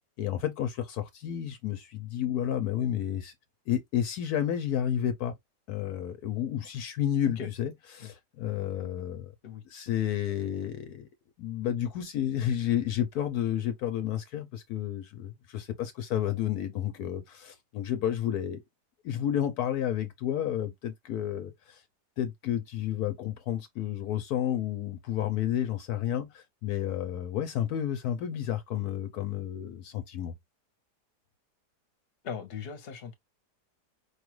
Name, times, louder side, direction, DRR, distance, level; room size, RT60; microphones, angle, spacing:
voice 1, 0.2-3.3 3.7-5.3 5.7-9.3 9.6-11.1 11.4-18.6 19.0-21.8 22.2-30.3, left 10 dB, 70° left, 1.1 m, -31 dB
voice 2, 32.2-33.1, left 6 dB, 45° left, 1.0 m, -38 dB
4.9 x 2.4 x 3.0 m
omnidirectional pair, 1.8 m